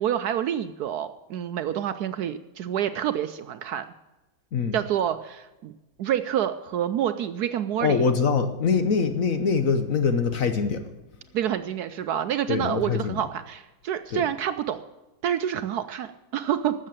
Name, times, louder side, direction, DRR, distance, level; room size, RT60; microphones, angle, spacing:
voice 1, 0.0-3.8 4.7-5.7 6.0-8.0 11.3-14.8 15.2-16.7, right 10 dB, 70° right, 10 dB, 1.0 m, -28 dB
voice 2, 7.8-10.9 12.5-13.2 14.1-14.2, left 5 dB, 55° left, 9 dB, 1.1 m, -23 dB
13.0 x 7.6 x 7.5 m, 1.1 s
omnidirectional pair, 2.0 m